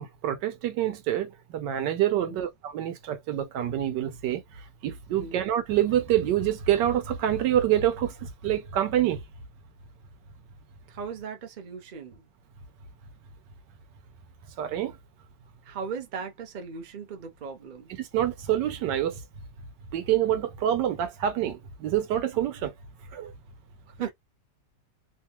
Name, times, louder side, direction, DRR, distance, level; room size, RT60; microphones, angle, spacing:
voice 1, 0.0-9.2 14.6-15.0 18.0-19.2 19.9-22.7 23.1-23.3, right 11 dB, 80° right, 1.3 m, -27 dB
voice 2, 2.1-2.4 5.1-5.4 10.9-12.2 15.6-17.9 24.0-24.1, right 6 dB, 60° right, 0.5 m, -37 dB
3.1 x 2.3 x 2.9 m
omnidirectional pair, 1.9 m